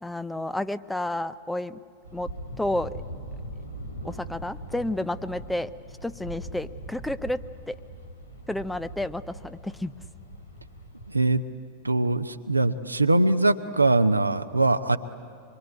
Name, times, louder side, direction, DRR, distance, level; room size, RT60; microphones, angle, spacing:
voice 1, 0.0-1.8 2.1-2.3 2.6-2.9 4.0-5.7 6.0-7.4 7.7-7.8 8.5-9.9, left 1 dB, 5° left, 13 dB, 0.6 m, -30 dB
sound 1, 2.0-11.3, right 1 dB, 85° left, 3.0 m, -41 dB
voice 2, 11.8-15.0, right 2 dB, 85° right, 9 dB, 0.8 m, -22 dB
25.0 x 23.0 x 9.5 m, 2.2 s
figure-of-eight pair, 90°, 0 cm